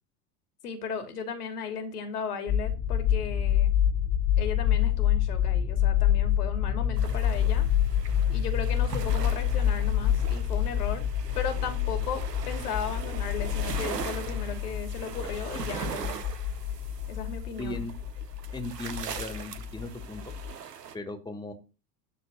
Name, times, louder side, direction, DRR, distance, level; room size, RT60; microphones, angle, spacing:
voice 1, 0.6-3.7 4.4-7.7 8.3-11.1 11.3-16.2 17.1-17.9, left 6 dB, 75° left, 6 dB, 2.7 m, -36 dB
sound 1, 2.5-20.5, left 10 dB, 40° left, 2.0 m, -27 dB
sound 2, 7.0-21.0, right 7 dB, 80° right, 1.2 m, -41 dB
voice 2, 17.6-17.9 18.5-20.2 20.9-21.5, left 2 dB, 10° left, 6 dB, 2.1 m, -37 dB
12.5 x 4.3 x 7.6 m, 0.32 s
figure-of-eight pair, 85°, 47 cm